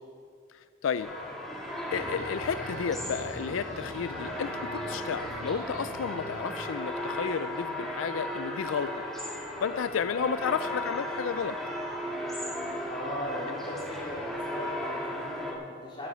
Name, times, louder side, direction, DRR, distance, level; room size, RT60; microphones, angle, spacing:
voice 1, 0.5-1.1 1.9-9.1 9.6-11.6, left 6 dB, 75° left, 12 dB, 0.4 m, -32 dB
sound 1, 1.0-15.5, left 1 dB, ahead, 1.8 m, -36 dB
sound 2, 1.9-6.6 13.7-14.3, right 1 dB, 75° right, 4.2 m, -44 dB
voice 2, 12.8-16.1, equal, 25° left, -5 dB, 3.9 m, -38 dB
14.0 x 9.7 x 6.8 m, 2.2 s
head